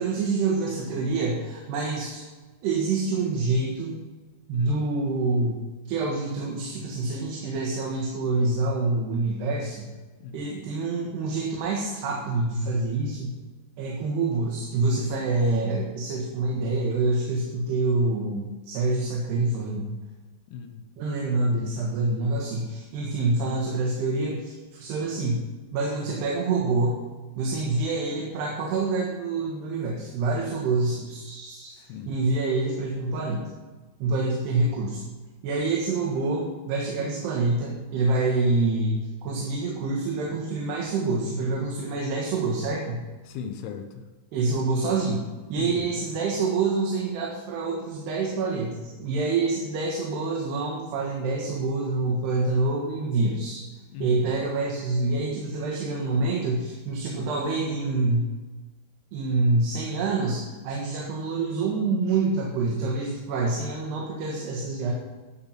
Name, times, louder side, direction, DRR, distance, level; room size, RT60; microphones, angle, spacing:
voice 1, 0.0-2.3 2.6-4.0 4.5-5.6 5.9-9.8 10.3-13.3 13.8-19.9 21.0-25.4 25.7-27.0 27.4-31.7 32.1-33.5 34.0-35.0 35.4-43.0 44.3-53.6 54.0-58.3 59.1-64.9, right 3 dB, 75° right, -2 dB, 3.5 m, -26 dB
voice 2, 4.5-4.9 10.2-10.5 20.5-20.9 31.7-32.1 43.3-44.0 45.5-46.1 53.9-54.5, left 7 dB, 75° left, 6 dB, 2.9 m, -38 dB
12.5 x 8.0 x 6.0 m, 1.3 s
omnidirectional pair, 4.9 m